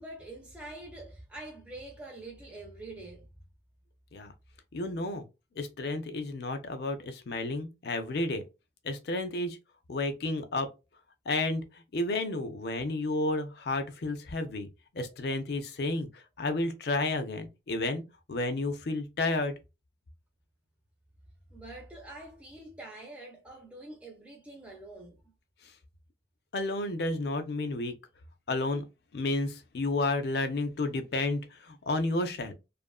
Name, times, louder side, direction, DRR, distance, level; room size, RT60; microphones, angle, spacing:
voice 1, 0.0-3.3 21.5-25.2, right 2 dB, 5° right, 0.4 m, -45 dB
voice 2, 4.7-5.2 5.6-8.4 8.8-9.6 9.9-10.7 11.3-11.6 11.9-14.7 14.9-16.1 16.4-18.0 18.3-19.5 26.5-27.9 28.5-28.8 29.1-32.5, left 2 dB, 55° left, 0.4 m, -31 dB
2.7 x 2.4 x 2.2 m
head